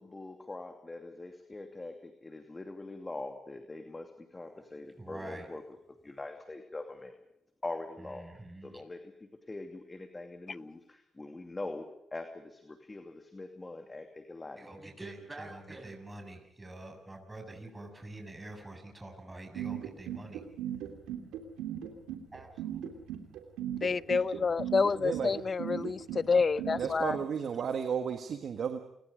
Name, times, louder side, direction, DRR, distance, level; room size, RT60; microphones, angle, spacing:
voice 1, 0.0-5.6 6.0-7.1 7.6-11.8 12.1-14.7, left 2 dB, 25° left, 2.7 m, -43 dB
voice 2, 5.0-5.5 8.0-8.7 14.6-20.4 22.3-22.8 24.0-24.1, right 2 dB, 20° right, 6.8 m, -46 dB
sound 1, 19.6-27.2, right 11 dB, 90° right, 3.1 m, -37 dB
voice 3, 23.8-27.2, left 5 dB, 45° left, 0.8 m, -28 dB
voice 4, 25.0-25.3 26.8-28.8, right 7 dB, 65° right, 1.7 m, -33 dB
29.5 x 21.0 x 5.2 m
supercardioid pair, 60°, 0 cm